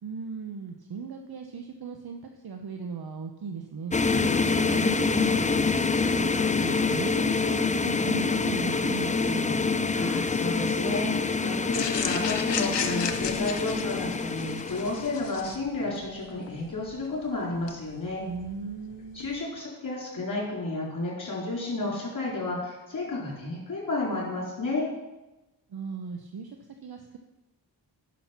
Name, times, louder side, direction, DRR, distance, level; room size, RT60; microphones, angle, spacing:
voice 1, 0.0-4.0 4.7-9.6 18.2-19.3 25.7-26.6 26.8-27.2, right 5 dB, 60° right, 4 dB, 0.8 m, -37 dB
sound 1, 3.9-15.2, left 4 dB, 20° left, 0.5 m, -26 dB
voice 2, 9.9-18.2 19.1-24.9, left 2 dB, 45° left, -4 dB, 4.0 m, -32 dB
sound 2, 11.7-19.4, left 7 dB, 75° left, 0.9 m, -36 dB
10.0 x 6.2 x 5.8 m, 1.0 s
cardioid pair, 60°, 42 cm